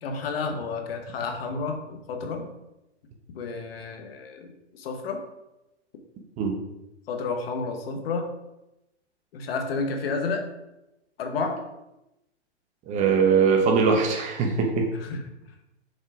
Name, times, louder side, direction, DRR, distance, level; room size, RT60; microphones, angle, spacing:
voice 1, 0.0-2.5 3.3-5.2 7.1-8.2 9.3-10.4 11.2-11.6 15.0-15.2, left 4 dB, 55° left, 4 dB, 1.3 m, -31 dB
voice 2, 12.9-14.9, right 5 dB, 20° right, 2 dB, 0.9 m, -21 dB
6.5 x 4.4 x 4.8 m, 0.91 s
hypercardioid pair, 135°, 35 cm